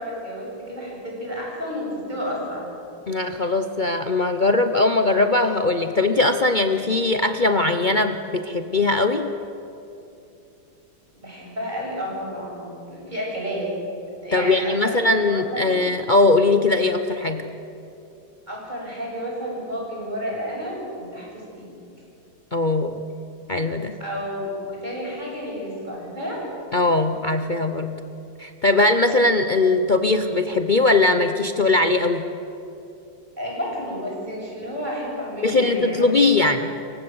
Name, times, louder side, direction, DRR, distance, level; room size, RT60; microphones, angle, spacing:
voice 1, 0.0-2.7 11.1-13.7 14.2-15.8 18.5-21.7 24.0-26.4 33.4-36.1 36.4-36.5, equal, 20° right, -4 dB, 7.7 m, -31 dB
voice 2, 3.1-9.3 14.3-17.4 22.5-23.0 23.5-24.0 26.7-27.9 28.4-32.2 35.4-36.7, left 2 dB, 65° left, 7 dB, 0.4 m, -20 dB
29.5 x 16.0 x 7.9 m, 2.7 s
omnidirectional pair, 2.2 m